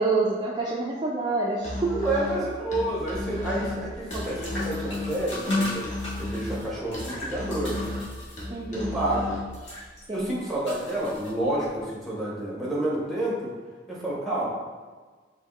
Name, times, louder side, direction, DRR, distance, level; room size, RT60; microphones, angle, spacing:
voice 1, 0.0-2.0 8.5-8.9 10.1-10.4, right 3 dB, 25° right, -5 dB, 0.3 m, -27 dB
Musical instrument, 1.6-9.5, left 2 dB, 40° left, 1.0 m, -33 dB
voice 2, 1.9-5.8 6.2-7.9 8.7-9.4 10.1-13.5 13.9-14.5, right 1 dB, ahead, -6 dB, 1.0 m, -29 dB
sound 1, 2.9-11.8, left 1 dB, 75° left, 1.5 m, -40 dB
4.8 x 2.9 x 3.1 m, 1.4 s
head